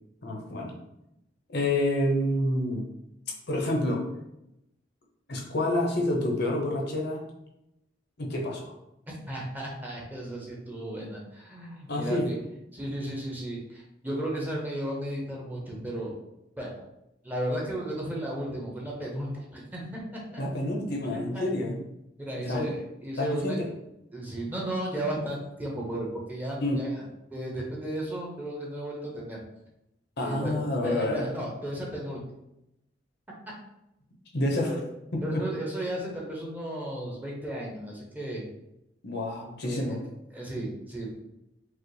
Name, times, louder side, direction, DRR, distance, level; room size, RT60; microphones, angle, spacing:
voice 1, 0.2-0.7 1.5-2.9 3.5-4.0 5.3-7.2 8.2-8.7 11.9-12.3 20.4-21.8 22.5-22.7 23.2-23.7 26.6-26.8 30.2-31.3 34.3-34.7 35.1-35.4 39.0-40.0, left 1 dB, 60° left, 0 dB, 0.8 m, -28 dB
voice 2, 9.3-12.4 12.7-16.2 16.6-16.8 17.2-19.8 20.3-20.4 21.1-21.4 22.2-23.6 24.1-27.0 27.3-29.4 30.2-32.2 34.6-34.8 35.2-38.5 39.7-40.0 40.3-41.1, right 1 dB, 10° right, -3 dB, 0.8 m, -34 dB
4.8 x 2.1 x 3.2 m, 0.85 s
head